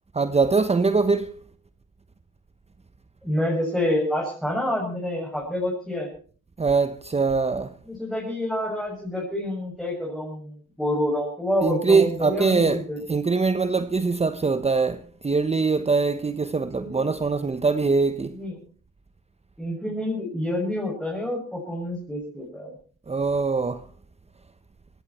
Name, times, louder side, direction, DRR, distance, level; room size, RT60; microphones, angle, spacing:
voice 1, 0.1-1.3 6.6-7.7 11.6-12.8 13.1-18.4 23.1-23.8, right 4 dB, 20° right, 1.0 m, -22 dB
voice 2, 3.2-6.1 7.9-13.0 16.7-17.0 18.3-18.6 19.6-22.7, left 1 dB, ahead, 6.9 m, -28 dB
19.5 x 17.0 x 4.4 m
cardioid pair, 90°, 30 cm